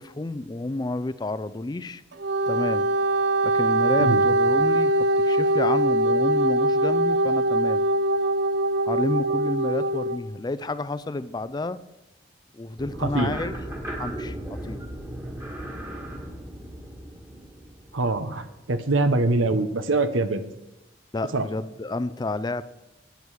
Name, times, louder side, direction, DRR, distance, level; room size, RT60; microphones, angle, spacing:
voice 1, 0.0-2.0 2.5-2.9 3.4-4.9 5.2-7.8 8.9-11.8 12.5-13.5 14.0-14.8 21.1-22.6, left 2 dB, 20° left, 15 dB, 0.4 m, -30 dB
Wind instrument woodwind instrument, 2.1-10.2, right 1 dB, 60° right, 0.7 m, -22 dB
sound 1, 12.8-18.8, right 1 dB, 15° right, 1.7 m, -36 dB
voice 2, 13.0-13.4 17.9-20.4 21.3-21.4, right 2 dB, 90° right, 10 dB, 1.0 m, -24 dB
13.5 x 9.4 x 4.9 m, 0.94 s
head